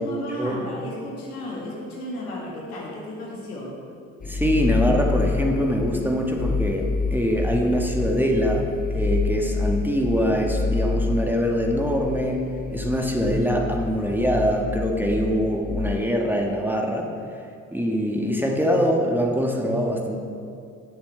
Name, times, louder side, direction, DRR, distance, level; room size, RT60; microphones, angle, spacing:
voice 1, 0.0-3.7, left 1 dB, 85° left, -3 dB, 1.9 m, -33 dB
sound 1, 4.2-15.9, left 3 dB, 20° left, 0.7 m, -28 dB
voice 2, 4.3-17.1 17.7-20.2, equal, 5° right, 0 dB, 1.4 m, -23 dB
16.5 x 6.9 x 3.3 m, 2.5 s
figure-of-eight pair, 50°, 43 cm